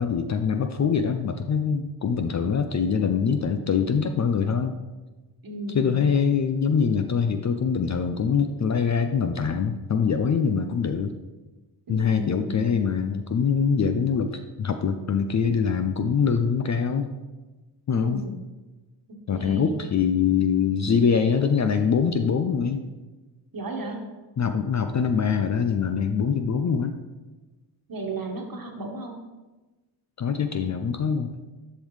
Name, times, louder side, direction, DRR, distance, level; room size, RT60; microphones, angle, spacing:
voice 1, 0.0-4.7 5.7-11.1 11.9-17.1 17.9-18.2 19.3-22.9 24.4-27.0 30.2-31.3, left 6 dB, 35° left, 7 dB, 0.5 m, -24 dB
voice 2, 5.4-6.1 11.9-12.6 17.9-18.4 19.3-19.8 23.5-24.0 27.9-29.2, right 1 dB, 40° right, 2 dB, 1.5 m, -34 dB
7.0 x 5.4 x 3.2 m, 1.2 s
supercardioid pair, 55°, 50 cm